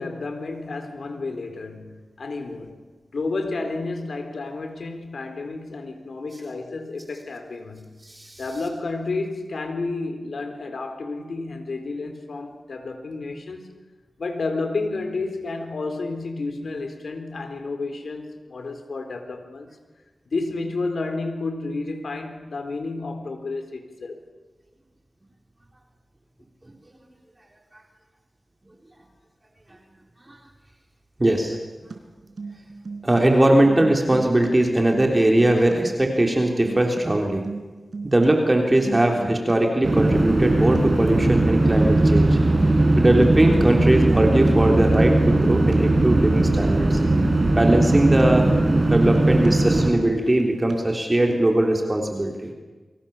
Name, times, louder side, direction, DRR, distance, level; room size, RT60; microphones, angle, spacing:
voice 1, 0.0-2.9 3.1-8.0 8.4-13.8 14.2-19.8 20.3-24.2, left 3 dB, 75° left, 3.8 m, -31 dB
voice 2, 8.1-8.4 30.3-30.4 31.2-31.6 33.0-37.4 38.0-47.0 47.5-48.5 48.9-52.5, right 1 dB, 25° right, 3.6 m, -20 dB
sound 1, 31.9-32.0 32.2-33.2 33.5-34.5 34.8-35.7 36.2-37.0 37.3-38.3 38.6-39.5 39.8-40.2 40.4-40.8 41.4-41.5 41.7-41.8 42.0-44.5 44.8-45.1 45.4-45.8 46.2-47.0 47.3-47.6 47.9-48.2 48.7-49.5 49.8-50.1 50.4-50.7 51.2-51.4, right 4 dB, 65° right, 4.1 m, -37 dB
sound 2, 39.8-49.9, right 2 dB, 40° right, 4.9 m, -19 dB
29.0 x 24.5 x 7.2 m
wide cardioid pair, 95°, 0 cm